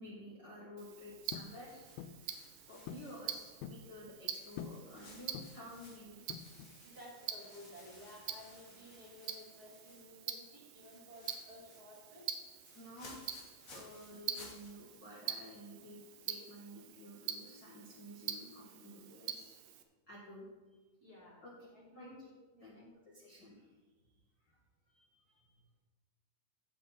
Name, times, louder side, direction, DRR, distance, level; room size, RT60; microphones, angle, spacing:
voice 1, 0.0-6.2 12.7-13.2 13.7-19.6 20.1-20.5 21.4-21.7 21.9-22.3 22.6-22.8 23.0-23.7 24.9-25.6, equal, 40° left, -6 dB, 1.7 m, -52 dB
Tick-tock, 0.8-19.8, right 10 dB, 80° right, 2.5 m, -46 dB
sound 1, 1.3-1.6 2.0-2.2 2.9-3.1 3.4-3.9 4.6-4.9 5.3-5.7 6.3-6.8, left 9 dB, 80° left, 2.1 m, -46 dB
sound 2, 1.4-4.0 4.4-10.3 10.6-15.8, left 2 dB, 55° left, 0.9 m, -59 dB
voice 2, 6.8-12.2 21.0-21.4 21.7-22.1 22.5-22.9 24.4-24.6, left 1 dB, 30° right, -5 dB, 2.4 m, -55 dB
14.0 x 7.7 x 4.4 m, 1.3 s
omnidirectional pair, 4.4 m